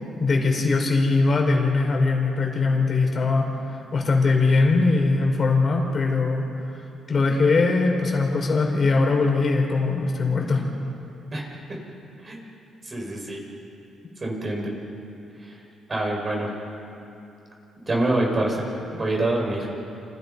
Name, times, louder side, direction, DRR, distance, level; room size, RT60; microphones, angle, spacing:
voice 1, 0.2-3.5 3.9-6.4 7.1-10.7, left 3 dB, 40° left, 1 dB, 5.2 m, -21 dB
voice 2, 11.3-11.8 12.2-12.4 12.8-13.4 14.2-14.7 15.4-15.6 15.9-16.5 17.9-19.7, right 1 dB, 30° right, -1 dB, 6.6 m, -26 dB
29.5 x 28.5 x 5.7 m, 2.8 s
cardioid pair, 110°, 0 cm